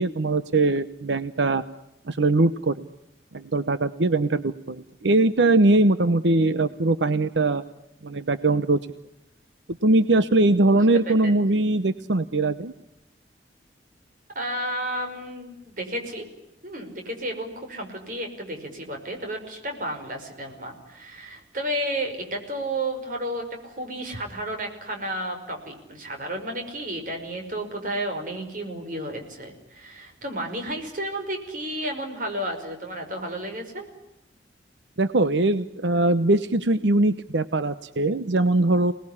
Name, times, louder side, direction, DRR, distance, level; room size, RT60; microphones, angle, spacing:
voice 1, 0.0-1.6 2.1-2.9 3.3-7.6 8.0-8.8 9.8-12.7 35.0-38.9, right 2 dB, 90° right, 12 dB, 0.9 m, -21 dB
voice 2, 14.3-16.3 16.6-33.9, right 1 dB, 50° right, 4 dB, 5.5 m, -32 dB
27.5 x 19.5 x 9.9 m, 0.88 s
head